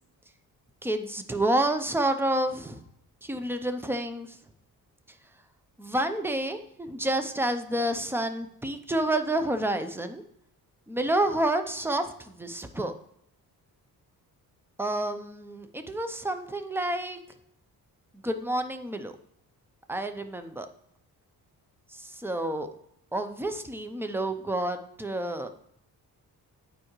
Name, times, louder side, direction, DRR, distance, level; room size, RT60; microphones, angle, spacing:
voice 1, 0.8-2.8 3.2-4.4 5.8-10.2 10.9-12.9 14.8-17.2 18.2-19.2 19.9-20.7 21.9-22.7 23.1-25.5, right 1 dB, 5° right, 8 dB, 0.5 m, -29 dB
8.8 x 4.8 x 3.0 m, 0.74 s
cardioid pair, 125°, 37 cm